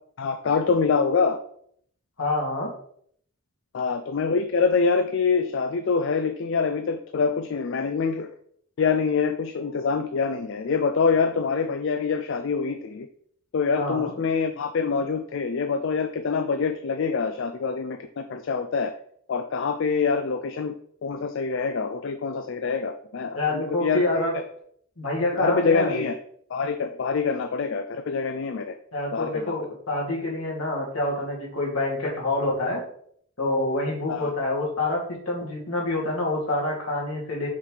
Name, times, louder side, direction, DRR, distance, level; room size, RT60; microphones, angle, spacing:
voice 1, 0.2-1.4 3.7-8.3 8.8-13.1 13.5-18.9 19.3-20.8 21.0-24.0 24.3-24.4 25.4-26.2 26.5-28.7 29.1-29.5 34.1-34.3, left 5 dB, 60° left, 8 dB, 0.4 m, -25 dB
voice 2, 2.2-2.7 13.7-14.1 23.3-24.3 25.0-26.0 28.9-32.8 33.4-37.5, left 2 dB, 75° left, -4 dB, 2.5 m, -27 dB
6.2 x 5.7 x 3.2 m, 0.64 s
head